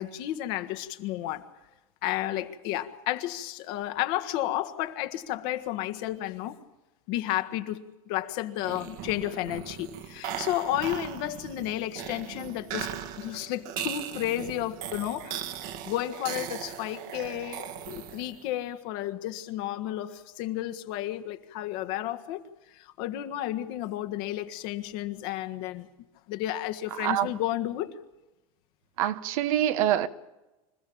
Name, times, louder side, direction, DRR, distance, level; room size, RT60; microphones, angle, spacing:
voice 1, 0.0-1.4 2.0-6.6 7.1-12.9 13.2-15.6 15.8-22.4 22.7-25.9 26.3-28.0, left 13 dB, 60° left, 1.6 m, -32 dB
sound 1, 8.6-18.5, right 9 dB, 55° right, 1.6 m, -38 dB
voice 2, 29.0-30.1, right 12 dB, 70° right, 1.1 m, -25 dB
26.0 x 15.0 x 8.7 m
supercardioid pair, 120°, 18 cm